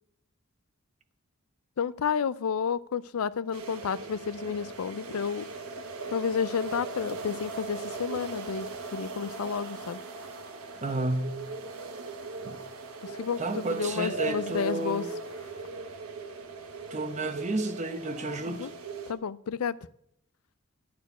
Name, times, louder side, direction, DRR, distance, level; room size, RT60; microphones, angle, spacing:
voice 1, 1.8-5.5 6.1-8.7 8.9-10.0 13.2-15.0 18.5-18.7 19.1-19.8, left 6 dB, 85° left, 0.4 m, -31 dB
Winter Wind Mash-Up fast, 3.5-19.1, right 3 dB, 85° right, 1.3 m, -39 dB
voice 2, 10.8-11.4 12.4-12.6 13.4-15.1 16.9-18.7, right 2 dB, 35° right, 1.0 m, -31 dB
12.0 x 4.3 x 8.3 m
head